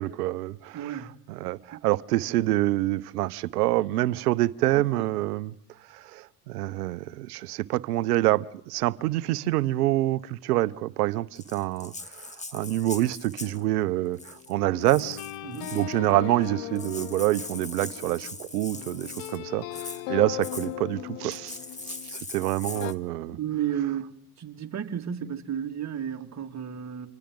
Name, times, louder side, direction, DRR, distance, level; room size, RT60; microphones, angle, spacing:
voice 1, 0.0-5.5 5.9-15.2 15.7-21.6 21.9-23.4, right 16 dB, 80° right, 0.9 m, -27 dB
voice 2, 0.7-1.1 1.7-1.8 15.4-15.8 23.3-24.1 24.4-27.1, right 9 dB, 35° right, 2.3 m, -32 dB
Rattle (instrument), 11.4-13.6 14.1-14.5 14.9-15.9 16.5-16.6 16.8-19.4 19.7-20.0 20.4-20.7 21.3-22.9, left 3 dB, 15° left, 1.7 m, -41 dB
sound 1, 13.4-22.2 22.7-22.9, left 15 dB, 65° left, 1.2 m, -39 dB
29.5 x 26.0 x 3.8 m
hypercardioid pair, 80°, 46 cm